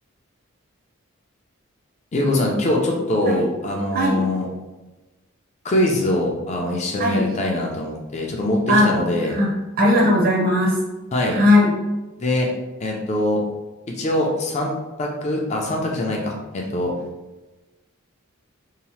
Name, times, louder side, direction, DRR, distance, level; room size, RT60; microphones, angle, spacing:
voice 1, 2.1-4.5 5.6-9.4 11.1-11.4 12.2-12.5 12.8-13.4 14.0-16.9, left 1 dB, 30° left, 0 dB, 0.4 m, -23 dB
voice 2, 9.8-10.7 11.3-11.7, left 1 dB, 45° right, -3 dB, 0.6 m, -17 dB
2.8 x 2.0 x 3.0 m, 1.1 s
head